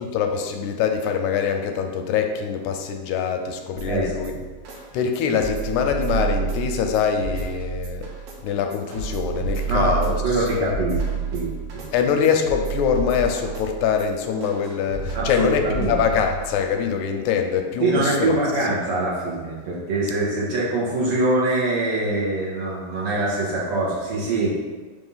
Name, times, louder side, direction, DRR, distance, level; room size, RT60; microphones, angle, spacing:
voice 1, 0.0-4.3 4.9-8.1 8.4-10.7 11.9-18.3, left 7 dB, 85° left, 4 dB, 1.9 m, -24 dB
sound 1, 3.8-16.7, right 5 dB, 75° right, 2.2 m, -30 dB
voice 2, 9.7-11.9 15.1-16.0 17.8-24.6, right 2 dB, 55° right, -6 dB, 2.1 m, -24 dB
5.4 x 3.5 x 5.4 m, 1.4 s
omnidirectional pair, 3.4 m